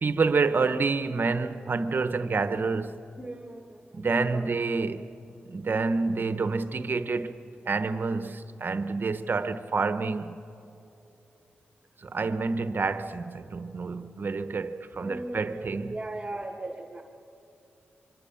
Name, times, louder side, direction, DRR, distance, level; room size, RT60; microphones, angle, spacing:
voice 1, 0.0-3.0 3.9-5.1 5.5-7.4 7.7-10.4 12.0-15.9, right 4 dB, 55° right, 1.1 m, -28 dB
voice 2, 3.2-4.1 4.3-4.5 15.0-17.0, right 2 dB, 25° right, 1.7 m, -38 dB
25.5 x 24.5 x 7.1 m
cardioid pair, 50°, 4 cm